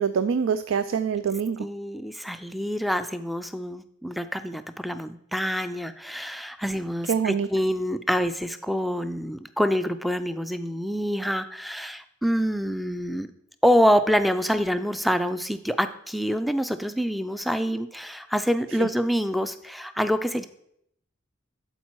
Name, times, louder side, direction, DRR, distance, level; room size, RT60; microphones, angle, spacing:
voice 1, 0.0-1.6 7.1-7.5 18.8-18.9, right 6 dB, 75° right, 13 dB, 0.4 m, -25 dB
voice 2, 1.6-13.3 13.6-20.5, equal, ahead, 11 dB, 0.4 m, -26 dB
11.5 x 4.4 x 4.6 m, 0.74 s
head